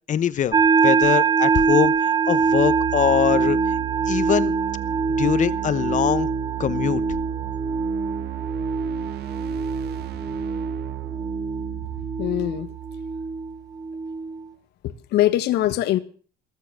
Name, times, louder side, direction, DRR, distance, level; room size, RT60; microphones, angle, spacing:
voice 1, 0.1-0.6 0.8-3.6 4.1-4.5 5.2-6.3 6.6-7.0, left 9 dB, 45° left, 1.0 m, -22 dB
sound 1, 0.5-14.4, right 5 dB, 20° right, 1.3 m, -24 dB
sound 2, 2.3-14.1, right 14 dB, 70° right, 1.5 m, -34 dB
voice 2, 12.2-12.7 14.8-16.0, left 14 dB, 80° left, 1.4 m, -22 dB
19.5 x 7.1 x 9.1 m
cardioid pair, 110°, 17 cm